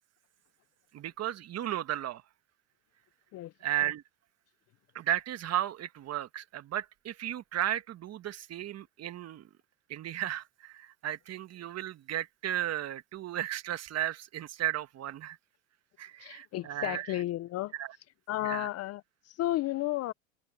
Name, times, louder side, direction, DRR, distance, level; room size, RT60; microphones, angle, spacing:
voice 1, 0.9-2.2 3.6-4.0 4.9-9.5 9.9-15.4 16.0-17.2 17.7-18.0 18.4-18.7, right 12 dB, 35° right, 1.6 m, -34 dB
voice 2, 16.2-17.7 18.3-19.0 19.3-20.1, left 15 dB, 35° left, 0.6 m, -32 dB
supercardioid pair, 110°, 42 cm